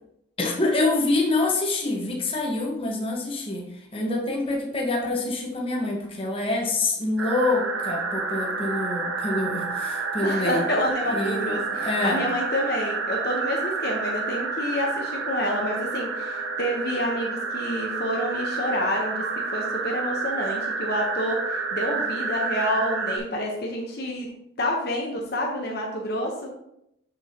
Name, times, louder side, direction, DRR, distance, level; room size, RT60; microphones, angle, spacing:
voice 1, 0.4-3.6 3.9-10.6 11.1-12.2, left 2 dB, 25° left, -1 dB, 1.1 m, -26 dB
sound 1, 7.2-23.2, right 4 dB, 70° right, 0.9 m, -29 dB
voice 2, 10.2-19.2 19.5-24.3 24.6-26.5, equal, 50° left, 0 dB, 0.9 m, -28 dB
7.1 x 6.4 x 2.9 m, 0.80 s
head